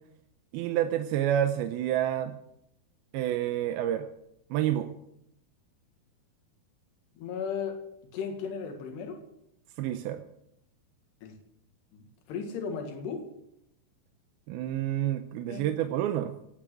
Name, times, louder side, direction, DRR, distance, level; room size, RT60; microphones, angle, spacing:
voice 1, 0.5-2.4 3.1-4.1 4.5-4.9 9.8-10.2 14.5-16.3, right 11 dB, 75° right, 8 dB, 2.6 m, -28 dB
voice 2, 7.2-7.8 8.1-9.2 11.2-11.4 11.9-12.0 12.3-13.3 15.5-15.7, left 6 dB, 90° left, 4 dB, 3.9 m, -35 dB
18.0 x 8.9 x 7.6 m, 0.78 s
omnidirectional pair, 4.6 m